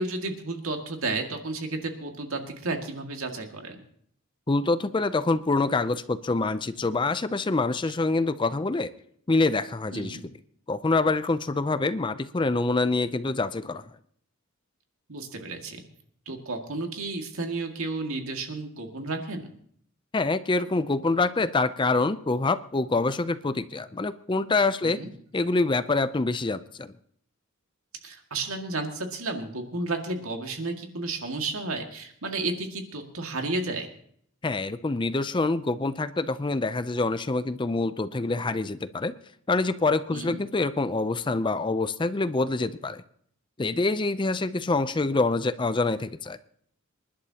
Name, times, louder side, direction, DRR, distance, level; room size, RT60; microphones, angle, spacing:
voice 1, 0.0-3.8 9.9-10.2 15.1-15.8 16.3-19.5 24.8-25.1 28.0-33.9 40.1-40.4, right 2 dB, 75° right, 3 dB, 2.1 m, -32 dB
voice 2, 4.5-8.9 9.3-10.2 10.7-13.9 20.1-25.0 25.3-26.9 34.4-39.2 39.5-43.0 43.6-46.4, left 3 dB, 20° left, 13 dB, 0.5 m, -26 dB
27.0 x 11.5 x 2.9 m, 0.64 s
head